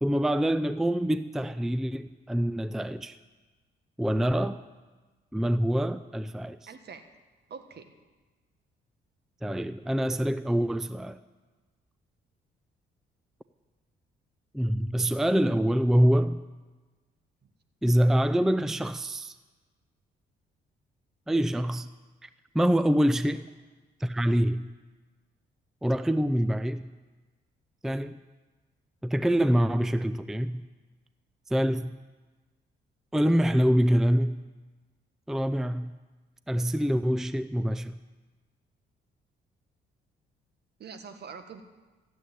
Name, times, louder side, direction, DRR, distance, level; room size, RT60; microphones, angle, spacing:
voice 1, 0.0-3.2 4.0-4.6 5.3-6.6 9.4-11.2 14.5-16.4 17.8-19.4 21.3-21.9 22.2-22.3 22.5-23.5 24.0-24.7 25.8-26.8 27.8-28.2 29.0-30.6 31.5-32.0 33.1-34.4 35.3-35.9 36.5-38.0, equal, ahead, 13 dB, 0.5 m, -25 dB
voice 2, 6.7-7.0 7.5-7.9 40.8-41.6, right 6 dB, 55° right, 8 dB, 1.6 m, -44 dB
15.5 x 8.3 x 9.4 m, 1.3 s
cardioid pair, 90°, 20 cm